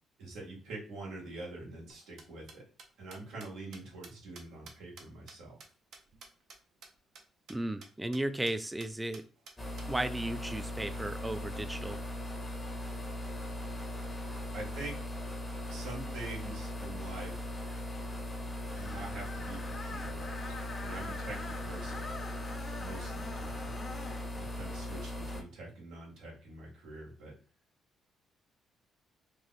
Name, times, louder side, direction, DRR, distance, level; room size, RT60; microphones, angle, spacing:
voice 1, 0.2-2.6 3.0-5.6 14.5-15.1 15.7-17.5 18.7-22.1 22.8-23.7 24.3-27.3, right 2 dB, 90° right, -3 dB, 1.4 m, -45 dB
sound 1, 1.9-6.6 6.8-6.9 7.1-7.2 7.5-7.6 7.8-8.2 8.5-8.6 8.8-9.9, right 4 dB, 70° right, 0.8 m, -51 dB
voice 2, 7.5-9.2 9.9-12.0, right 1 dB, 10° right, 10 dB, 0.3 m, -35 dB
sound 2, 9.6-25.4, left 1 dB, 15° left, 0.8 m, -39 dB
Screech, 18.7-24.3, left 3 dB, 45° left, 0.8 m, -45 dB
3.1 x 2.3 x 4.0 m, 0.38 s
cardioid pair, 90°, 0 cm